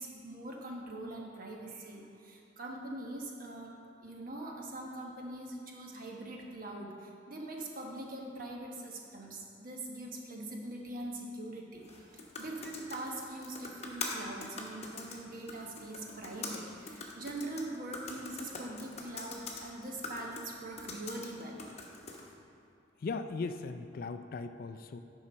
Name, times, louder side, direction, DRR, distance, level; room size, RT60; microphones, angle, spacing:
voice 1, 0.0-21.6, right 1 dB, 50° right, 0 dB, 1.1 m, -43 dB
sound 1, 11.8-22.3, left 3 dB, 35° left, 1.0 m, -44 dB
voice 2, 23.0-25.0, left 4 dB, 50° left, 9 dB, 0.3 m, -38 dB
9.8 x 5.7 x 4.3 m, 2.5 s
head